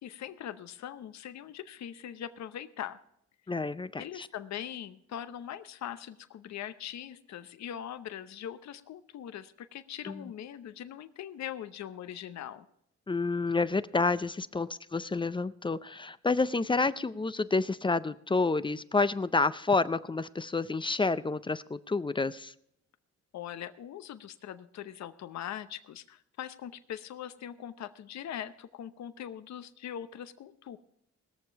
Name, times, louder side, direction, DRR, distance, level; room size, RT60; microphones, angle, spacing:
voice 1, 0.0-3.0 4.0-12.7 23.3-30.8, left 10 dB, 65° left, 12 dB, 0.9 m, -41 dB
voice 2, 3.5-4.3 10.1-10.2 13.1-22.5, left 3 dB, 15° left, 15 dB, 0.5 m, -29 dB
20.0 x 7.0 x 4.6 m, 0.73 s
cardioid pair, 90°, 30 cm